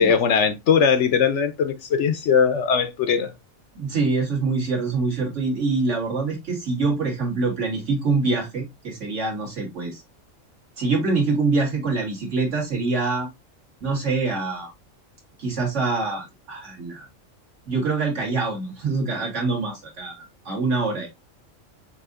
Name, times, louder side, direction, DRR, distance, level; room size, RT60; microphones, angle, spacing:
voice 1, 0.0-3.3, left 6 dB, 65° left, 0.9 m, -20 dB
voice 2, 3.8-10.0 10.8-13.3 13.8-14.7 15.4-17.1 17.7-20.2 20.5-21.1, right 3 dB, 60° right, 2.1 m, -25 dB
6.1 x 2.7 x 2.4 m
omnidirectional pair, 1.4 m